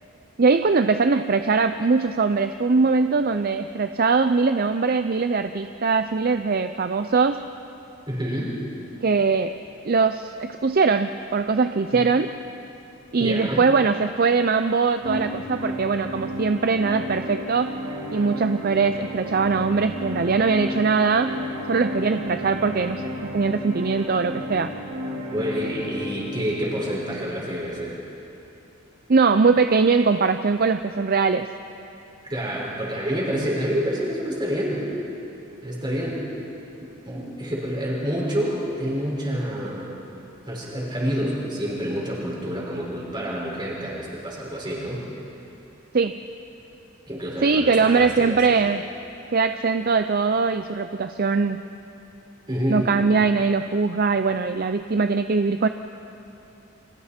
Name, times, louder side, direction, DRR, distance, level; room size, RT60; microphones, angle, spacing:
voice 1, 0.4-7.4 9.0-9.5 9.8-12.3 13.1-17.7 18.1-21.3 21.7-23.0 23.3-24.7 29.1-31.5 45.9-46.2 47.4-48.8 49.3-51.6 52.7-55.7, right 4 dB, 45° right, 9 dB, 0.5 m, -21 dB
voice 2, 8.1-8.5 11.9-12.1 13.2-13.7 25.3-28.0 32.3-34.8 35.6-36.2 37.1-39.9 40.5-45.0 47.1-48.6 52.5-52.9, equal, 20° right, -4 dB, 5.3 m, -28 dB
sound 1, 15.0-27.0, equal, 80° right, 3.1 m, -33 dB
29.5 x 25.0 x 4.4 m, 2.8 s
head